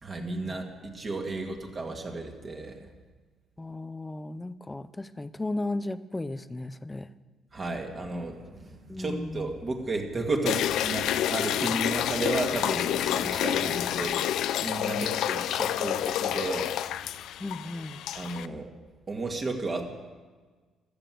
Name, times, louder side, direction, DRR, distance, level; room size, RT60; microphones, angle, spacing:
voice 1, 0.0-2.9 7.5-8.4 9.0-14.2 14.6-16.7 18.1-18.7 19.1-19.9, right 3 dB, 25° right, 2 dB, 2.0 m, -33 dB
voice 2, 1.2-1.6 3.6-7.1 8.9-9.5 14.8-15.2 15.8-15.9 17.4-18.0, left 2 dB, 10° left, 14 dB, 0.5 m, -35 dB
sound 1, 7.7-14.3, equal, 75° right, 3.2 m, -48 dB
sound 2, 10.5-18.5, left 11 dB, 75° left, 0.5 m, -29 dB
14.5 x 13.0 x 7.7 m, 1.4 s
cardioid pair, 145°, 0 cm